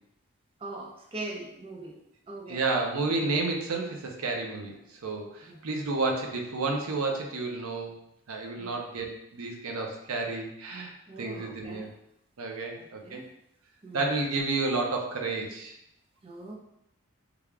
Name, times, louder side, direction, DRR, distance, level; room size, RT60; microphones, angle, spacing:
voice 1, 0.6-2.0 2.3-2.6 5.5-5.8 8.6-8.7 11.1-11.9 12.7-13.2 13.8-14.1 16.2-16.5, right 2 dB, 25° right, 0 dB, 0.3 m, -41 dB
voice 2, 2.5-8.0 8.3-11.9 12.4-13.2 13.9-15.7, right 3 dB, 90° right, 2 dB, 0.6 m, -31 dB
3.3 x 2.4 x 3.4 m, 0.80 s
head